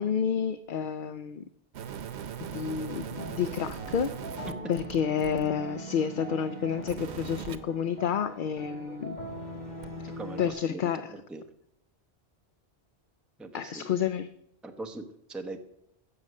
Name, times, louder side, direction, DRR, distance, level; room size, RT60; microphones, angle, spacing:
voice 1, 0.0-1.4 2.4-4.1 4.7-9.2 10.4-11.1 13.5-14.3, left 7 dB, 55° left, 12 dB, 0.7 m, -30 dB
sound 1, 1.7-5.5 6.8-7.6 9.8-9.9, right 8 dB, 90° right, 1.0 m, -39 dB
sound 2, 2.5-10.5, right 1 dB, 40° left, 2.1 m, -42 dB
voice 2, 10.2-10.8 11.1-11.4 13.4-13.9 14.6-15.6, right 2 dB, ahead, 5 dB, 0.9 m, -40 dB
16.0 x 6.6 x 6.4 m, 0.75 s
omnidirectional pair, 1.1 m